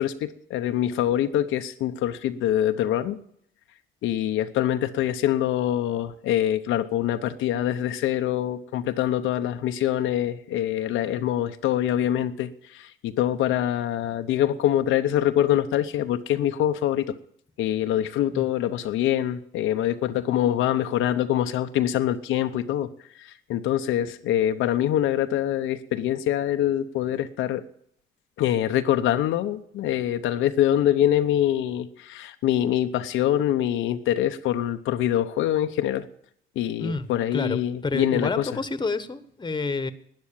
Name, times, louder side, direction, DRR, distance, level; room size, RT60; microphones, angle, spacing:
voice 1, 0.0-3.2 4.0-17.1 17.6-22.9 23.2-27.6 28.4-36.1 36.6-38.5, left 11 dB, 90° left, 8 dB, 0.8 m, -24 dB
voice 2, 36.8-39.9, left 3 dB, 20° left, 13 dB, 1.1 m, -29 dB
12.0 x 9.5 x 8.7 m, 0.67 s
cardioid pair, 90°, 20 cm